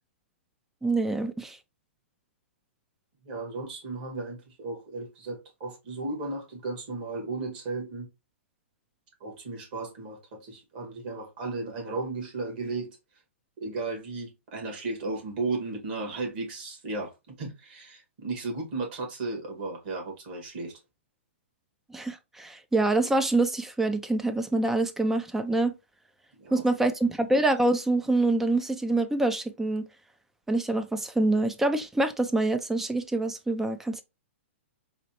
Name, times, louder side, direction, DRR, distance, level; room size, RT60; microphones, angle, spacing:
voice 1, 0.8-1.6 21.9-25.7 26.5-29.9 30.5-34.0, right 2 dB, 5° right, 0.4 m, -26 dB
voice 2, 3.2-8.1 9.2-12.9 13.6-20.8 26.4-26.6, right 3 dB, 45° right, 2.1 m, -35 dB
4.0 x 3.0 x 2.9 m
hypercardioid pair, 150°, 7 cm